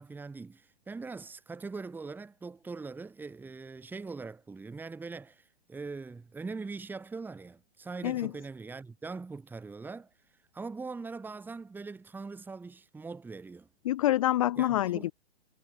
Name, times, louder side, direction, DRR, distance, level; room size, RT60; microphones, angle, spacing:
voice 1, 0.0-10.1 10.5-13.7 14.6-15.1, right 4 dB, 5° right, 1.8 m, -42 dB
voice 2, 13.8-15.1, left 14 dB, 35° left, 0.5 m, -26 dB
figure-of-eight pair, 125°, 32 cm